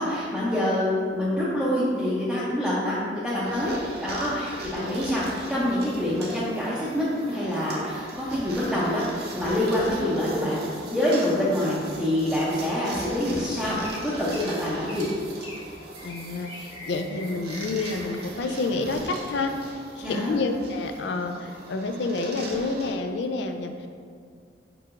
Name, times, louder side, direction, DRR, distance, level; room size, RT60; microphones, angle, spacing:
voice 1, 0.0-10.7 10.9-15.1 20.0-20.4, left 1 dB, ahead, -10 dB, 0.6 m, -26 dB
sound 1, 3.4-22.9, right 2 dB, 60° right, 0.7 m, -40 dB
sound 2, 12.9-13.3 13.8-14.1 14.3-14.5 14.9-15.1 15.4-15.6 16.0-18.1, left 2 dB, 45° left, 1.4 m, -42 dB
voice 2, 16.0-19.5 20.0-23.7, left 3 dB, 70° left, 6 dB, 0.4 m, -29 dB
4.7 x 4.6 x 2.5 m, 2.2 s
head